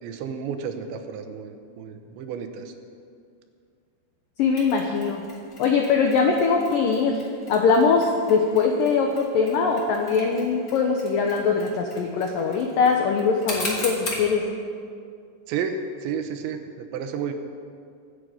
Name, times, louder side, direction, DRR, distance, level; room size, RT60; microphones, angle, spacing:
voice 1, 0.0-2.7 15.5-17.3, right 6 dB, 85° right, 7 dB, 3.2 m, -32 dB
voice 2, 4.4-5.2 5.6-7.2 7.5-14.4, left 5 dB, 90° left, 2 dB, 1.9 m, -22 dB
Mechanisms, 4.6-14.3, left 1 dB, 25° left, 2.1 m, -39 dB
24.0 x 8.8 x 5.1 m, 2.3 s
omnidirectional pair, 5.3 m